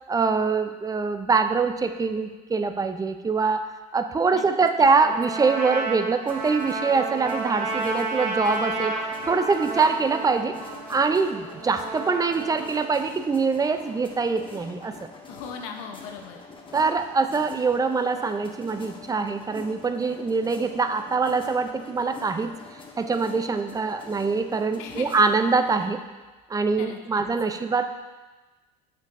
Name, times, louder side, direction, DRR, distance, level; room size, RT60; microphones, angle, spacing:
voice 1, 0.1-3.7 3.9-9.0 9.3-10.5 10.9-14.9 16.7-22.5 23.0-26.0 26.5-28.1, right 4 dB, 15° right, 8 dB, 0.4 m, -24 dB
Trumpet, 4.9-12.9, right 3 dB, 80° right, 0.9 m, -32 dB
sound 1, 6.3-25.9, left 3 dB, 25° left, 1.0 m, -45 dB
voice 2, 15.3-16.4 24.8-25.1 26.8-27.3, left 6 dB, 65° left, 4 dB, 0.8 m, -39 dB
7.1 x 6.0 x 2.5 m, 1.2 s
hypercardioid pair, 70°, 21 cm